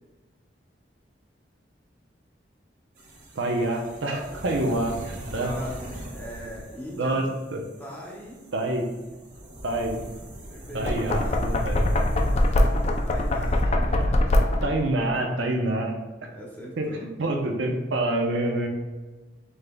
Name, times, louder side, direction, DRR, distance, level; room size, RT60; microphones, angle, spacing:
sound 1, 3.0-13.6, right 1 dB, 45° right, 1.0 m, -43 dB
voice 1, 3.4-5.6 7.0-7.3 7.5-7.6 8.5-8.9 9.6-10.0 10.7-12.0 13.7-13.8 14.6-16.0 16.8-18.7, right 1 dB, 85° right, 2 dB, 0.6 m, -27 dB
voice 2, 5.3-7.2 7.8-8.4 10.4-12.6 13.0-14.5 16.3-17.1, equal, 10° left, -4 dB, 0.8 m, -40 dB
Knock, 10.7-14.8, left 1 dB, 35° left, 0.3 m, -22 dB
5.6 x 3.3 x 2.3 m, 1.3 s
head